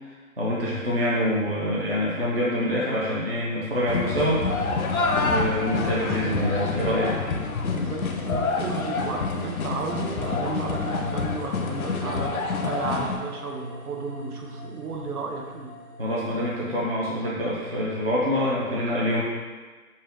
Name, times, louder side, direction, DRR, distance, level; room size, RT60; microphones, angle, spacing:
voice 1, 0.4-4.4 5.1-7.2 16.0-19.2, equal, 45° right, -6 dB, 0.4 m, -25 dB
sound 1, 3.9-13.2, left 4 dB, 70° left, 0.5 m, -27 dB
voice 2, 7.7-15.7, right 4 dB, 80° right, 1 dB, 0.8 m, -33 dB
sound 2, 11.3-16.8, left 1 dB, 25° right, 1.0 m, -42 dB
3.9 x 2.2 x 3.2 m, 1.4 s
hypercardioid pair, 180°, 44 cm